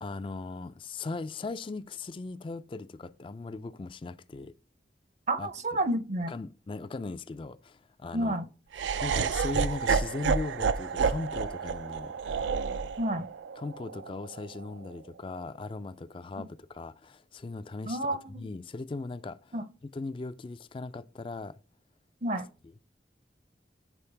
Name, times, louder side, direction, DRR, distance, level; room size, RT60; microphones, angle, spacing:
voice 1, 0.0-4.5 5.4-5.5 6.3-8.4 9.0-12.1 13.6-18.0 18.4-19.5 19.9-21.5, left 3 dB, 30° left, 0.3 m, -38 dB
voice 2, 5.3-6.3 8.1-8.5 13.0-13.3 16.4-16.5 17.9-18.5 19.5-19.6 22.2-22.5, right 1 dB, 40° right, 0.6 m, -30 dB
Laughter, 8.7-14.9, right 5 dB, 90° right, 0.4 m, -30 dB
7.1 x 4.5 x 3.3 m
head